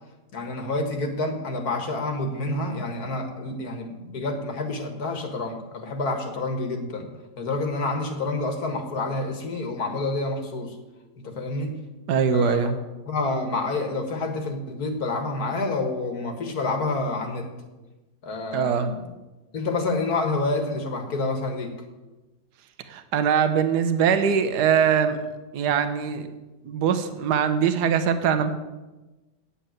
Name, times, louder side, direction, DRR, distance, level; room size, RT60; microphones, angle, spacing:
voice 1, 0.3-7.1 7.4-10.8 11.2-11.7 12.3-12.7 13.1-17.5 18.2-19.0 19.5-21.7, left 2 dB, 60° left, 5 dB, 2.0 m, -28 dB
voice 2, 12.1-12.8 18.5-18.9 22.9-25.2 25.5-26.3 26.6-28.5, right 7 dB, 70° right, 9 dB, 1.5 m, -22 dB
8.6 x 8.6 x 9.0 m, 1.1 s
omnidirectional pair, 1.9 m